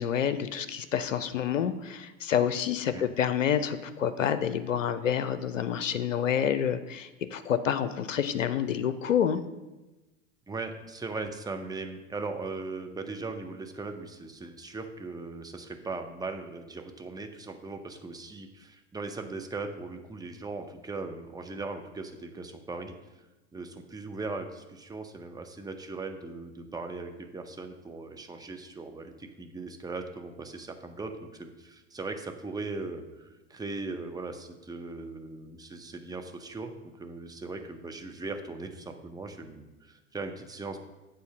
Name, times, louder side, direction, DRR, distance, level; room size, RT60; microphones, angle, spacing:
voice 1, 0.0-9.4, left 8 dB, 80° left, 12 dB, 0.5 m, -28 dB
voice 2, 10.5-22.9 23.5-40.8, right 3 dB, 10° right, 5 dB, 0.7 m, -39 dB
8.1 x 3.9 x 6.5 m, 1.1 s
figure-of-eight pair, 75°, 38 cm